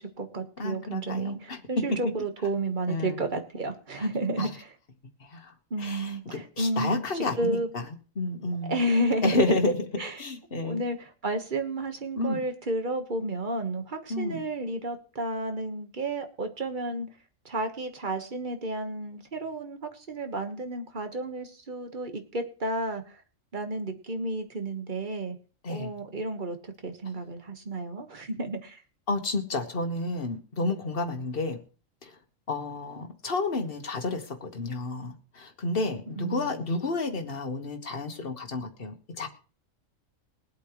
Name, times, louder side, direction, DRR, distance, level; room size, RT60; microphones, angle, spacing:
voice 1, 0.0-4.7 5.7-7.7 8.7-9.4 10.0-10.2 10.6-17.1 17.4-23.2 23.5-25.4 25.7-28.8 36.1-36.6, right 2 dB, 35° right, 6 dB, 1.5 m, -32 dB
voice 2, 0.6-1.6 2.9-3.2 4.4-4.5 5.2-5.5 5.8-7.8 8.2-8.8 9.2-9.8 10.2-10.8 12.2-12.4 14.1-14.4 25.6-25.9 29.1-31.6 32.0-32.2 32.5-39.3, left 3 dB, 45° left, 5 dB, 1.7 m, -30 dB
22.0 x 8.3 x 3.2 m, 0.37 s
omnidirectional pair, 1.4 m